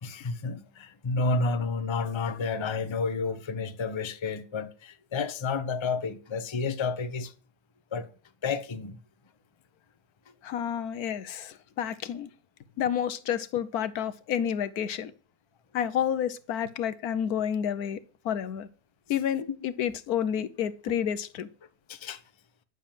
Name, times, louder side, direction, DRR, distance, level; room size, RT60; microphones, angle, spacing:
voice 1, 0.0-7.3 7.9-8.1 8.4-9.0 19.5-19.6 21.9-22.2, left 4 dB, 25° left, 0.7 m, -30 dB
voice 2, 10.4-12.3 12.8-15.1 15.7-18.0 18.2-18.7 19.1-21.5, left 9 dB, 75° left, 1.2 m, -30 dB
11.0 x 7.1 x 7.5 m
omnidirectional pair, 1.7 m